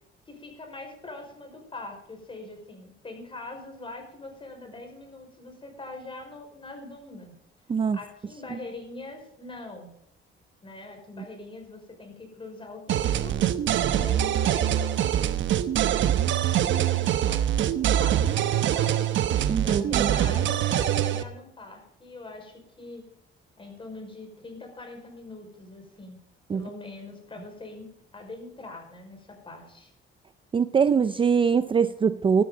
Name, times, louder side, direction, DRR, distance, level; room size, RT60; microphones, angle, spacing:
voice 1, 0.3-7.4 7.9-9.9 10.6-13.4 13.9-15.4 16.6-17.7 17.9-19.1 19.6-23.0 23.6-26.2 26.5-29.9, left 2 dB, 25° left, 3 dB, 5.3 m, -43 dB
sound 1, 12.9-21.2, right 11 dB, 70° right, 1.0 m, -24 dB
voice 2, 19.5-20.1 26.5-26.6 30.5-32.4, right 6 dB, 25° right, 12 dB, 0.5 m, -23 dB
15.5 x 12.0 x 3.9 m, 0.77 s
cardioid pair, 125°, 20 cm